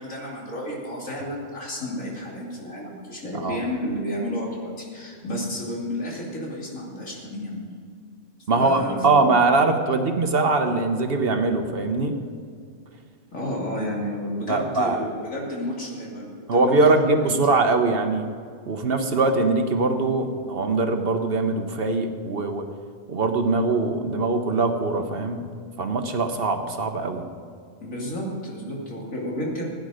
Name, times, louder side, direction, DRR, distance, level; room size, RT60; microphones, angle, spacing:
voice 1, 0.0-7.7 8.6-9.3 13.3-17.4 27.8-29.6, left 1 dB, 90° left, -3 dB, 3.2 m, -31 dB
voice 2, 8.5-12.1 14.5-15.1 16.5-18.3 18.7-22.6 23.1-25.4 25.8-27.2, right 3 dB, 50° right, 6 dB, 1.1 m, -22 dB
16.0 x 9.6 x 5.0 m, 2.2 s
omnidirectional pair, 1.3 m